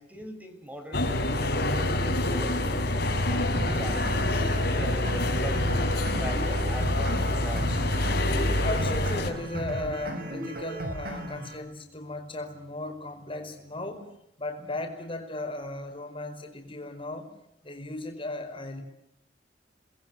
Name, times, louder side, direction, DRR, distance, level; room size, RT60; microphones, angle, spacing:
voice 1, 0.0-2.8 3.2-7.8, equal, 10° right, 6 dB, 5.0 m, -41 dB
sound 1, 0.9-9.3, left 1 dB, 65° left, 5.3 m, -26 dB
sound 2, 3.6-11.6, right 1 dB, 55° right, 7.1 m, -36 dB
voice 2, 8.6-14.1 14.4-17.3 17.6-18.8, left 2 dB, 30° left, 5 dB, 5.1 m, -36 dB
29.5 x 21.0 x 9.2 m, 0.78 s
head